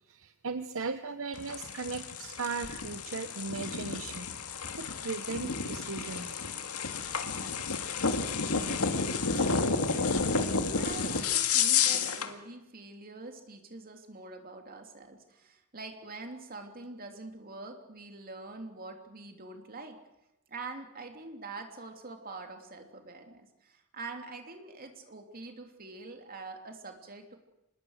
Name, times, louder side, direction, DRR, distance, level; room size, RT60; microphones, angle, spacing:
voice 1, 0.1-4.3 4.8-6.5 8.7-8.8, right 4 dB, 65° right, 10 dB, 0.9 m, -37 dB
sound 1, 1.3-12.3, left 5 dB, 80° left, 2.0 m, -31 dB
voice 2, 10.7-20.0 20.5-27.3, right 3 dB, 40° right, 4 dB, 2.9 m, -45 dB
25.5 x 20.5 x 6.5 m, 0.91 s
head